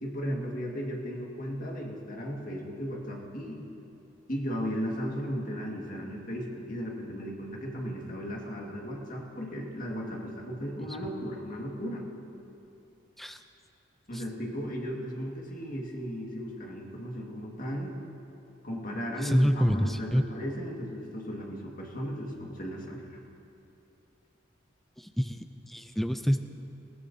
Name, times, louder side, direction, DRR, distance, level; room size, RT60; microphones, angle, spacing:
voice 1, 0.0-3.6 4.3-12.1 14.1-17.9 18.6-23.2, equal, 45° left, -1 dB, 1.7 m, -36 dB
voice 2, 19.2-20.2 25.0-26.4, equal, ahead, 7 dB, 0.4 m, -27 dB
20.5 x 15.5 x 2.7 m, 2.8 s
head